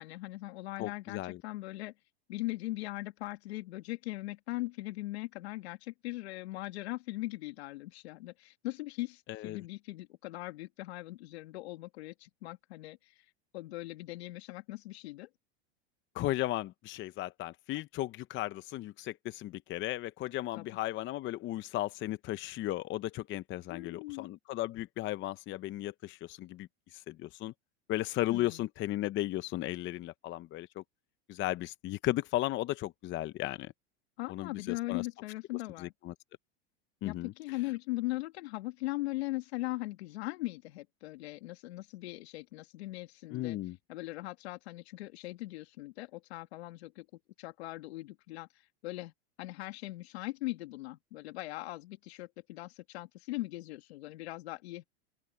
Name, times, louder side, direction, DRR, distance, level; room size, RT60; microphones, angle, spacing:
voice 1, 0.0-1.9 2.3-13.1 13.5-15.3 20.6-20.7 23.7-24.3 28.3-28.6 34.2-35.9 37.0-43.6 43.9-47.1 47.4-48.5 48.8-49.1 49.4-54.8, left 19 dB, 75° left, 2.3 m, -40 dB
voice 2, 0.8-1.4 9.3-9.6 16.1-27.5 27.9-30.8 31.3-33.7 34.3-35.0 35.8-36.1 37.0-37.6 43.3-43.8, left 15 dB, 35° left, 0.8 m, -35 dB
open air
supercardioid pair, 120°, 32 cm